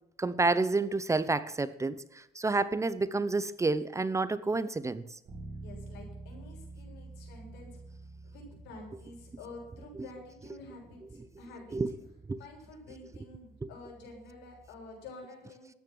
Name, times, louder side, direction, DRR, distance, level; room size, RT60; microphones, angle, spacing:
voice 1, 0.2-5.0 10.0-10.1 11.7-11.9 12.3-12.4 13.6-13.7, right 3 dB, 15° right, 16 dB, 0.8 m, -29 dB
Bass guitar, 5.2-15.0, right 2 dB, 45° right, 5.9 m, -50 dB
voice 2, 5.6-7.8 8.2-11.8 12.4-15.7, left 2 dB, 90° left, 0 dB, 7.1 m, -49 dB
13.5 x 9.9 x 7.8 m, 0.85 s
cardioid pair, 110°, 17 cm